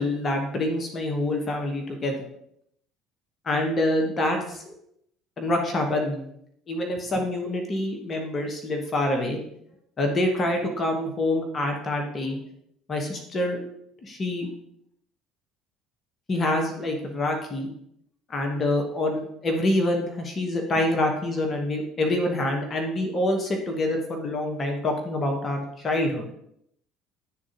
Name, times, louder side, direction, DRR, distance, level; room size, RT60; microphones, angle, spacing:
voice 1, 0.0-2.2 3.4-4.7 5.4-6.3 6.7-9.4 10.0-12.4 12.9-13.6 14.0-14.5 16.3-17.7 18.3-26.2, left 1 dB, 30° left, 3 dB, 1.1 m, -26 dB
11.0 x 3.7 x 2.5 m, 0.73 s
figure-of-eight pair, 60°, 0 cm